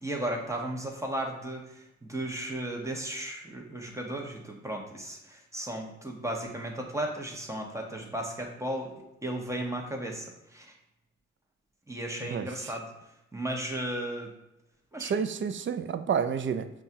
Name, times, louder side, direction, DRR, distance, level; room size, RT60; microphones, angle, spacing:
voice 1, 0.0-8.9 9.2-10.7 11.9-12.9 13.3-14.3 14.9-15.1, right 1 dB, 10° right, 1 dB, 1.0 m, -35 dB
voice 2, 12.2-12.7 15.0-16.7, right 7 dB, 45° right, 10 dB, 0.4 m, -30 dB
5.2 x 2.4 x 2.7 m, 0.87 s
supercardioid pair, 50°, 29 cm